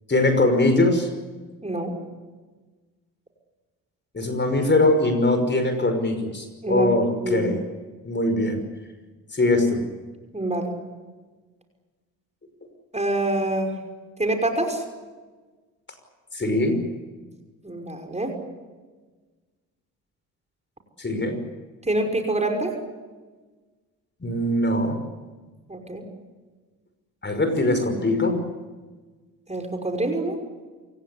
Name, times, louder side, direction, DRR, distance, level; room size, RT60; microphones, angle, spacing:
voice 1, 0.1-1.1 4.1-7.6 8.0-8.6 9.3-9.8 16.3-16.8 21.0-21.4 24.2-25.0 27.2-28.4, left 2 dB, 25° left, 7 dB, 5.6 m, -21 dB
voice 2, 1.6-1.9 6.6-6.9 7.2-7.5 10.3-10.7 12.9-13.8 14.2-14.8 17.6-18.4 21.8-22.7 25.7-26.0 29.5-30.4, right 1 dB, 15° right, 4 dB, 5.8 m, -26 dB
27.5 x 17.5 x 9.9 m, 1.3 s
hypercardioid pair, 55°, 42 cm